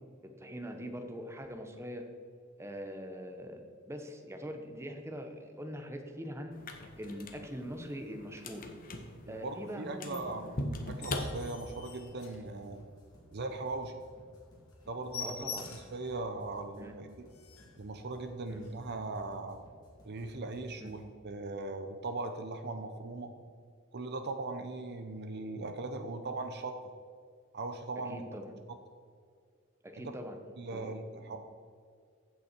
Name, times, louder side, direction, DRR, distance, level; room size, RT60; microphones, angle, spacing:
voice 1, 0.2-2.1 2.6-3.6 3.9-6.5 7.0-8.7 9.3-10.5 15.2-15.7 16.8-17.0 18.5-18.6 20.8-20.9 28.1-28.5 29.8-30.4 30.7-31.4, equal, 15° right, 4 dB, 1.0 m, -42 dB
sound 1, 6.5-12.0, left 1 dB, 40° left, 1.0 m, -41 dB
voice 2, 9.3-10.5 10.8-12.8 13.3-14.0 14.9-17.1 17.8-19.6 20.0-23.3 23.9-26.8 27.5-28.2 30.6-31.4, right 3 dB, 50° right, 7 dB, 0.7 m, -39 dB
sound 2, 10.1-21.0, equal, 20° left, 2.5 m, -59 dB
sound 3, 10.8-13.0 13.4-13.6 13.9-14.0 14.3-14.5 14.7-16.1 16.5-16.6 17.0-17.1 17.3-17.8 18.6-18.7, left 6 dB, 75° left, 1.7 m, -45 dB
15.0 x 5.6 x 4.5 m, 2.1 s
head